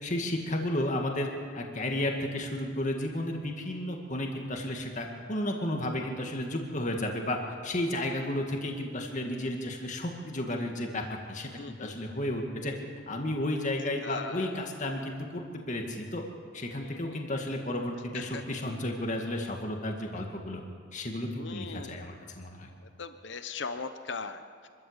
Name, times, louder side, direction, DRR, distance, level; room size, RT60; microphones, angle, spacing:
voice 1, 0.0-7.4 7.6-11.5 11.8-12.7 13.1-16.3 16.5-20.6 20.9-22.7, left 1 dB, 40° left, 2 dB, 2.0 m, -33 dB
voice 2, 11.6-11.9 14.0-14.6 16.8-17.2 18.1-18.4 21.3-22.0 23.0-24.7, left 4 dB, 65° left, 9 dB, 0.9 m, -39 dB
25.0 x 13.5 x 8.1 m, 2.1 s
head